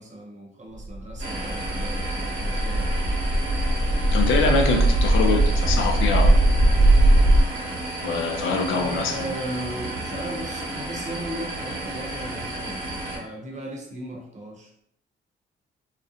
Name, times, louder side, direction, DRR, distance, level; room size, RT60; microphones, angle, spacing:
voice 1, 0.0-2.9 8.7-12.8 13.1-14.7, right 1 dB, 35° right, 0 dB, 0.8 m, -36 dB
sound 1, 0.8-7.4, right 1 dB, 65° right, 0.6 m, -20 dB
sound 2, 1.2-13.2, right 2 dB, 90° right, 1.0 m, -32 dB
voice 2, 4.1-6.4 8.0-9.2, left 4 dB, 80° left, 4 dB, 0.5 m, -24 dB
2.4 x 2.1 x 2.7 m, 0.73 s
cardioid pair, 90°, 20 cm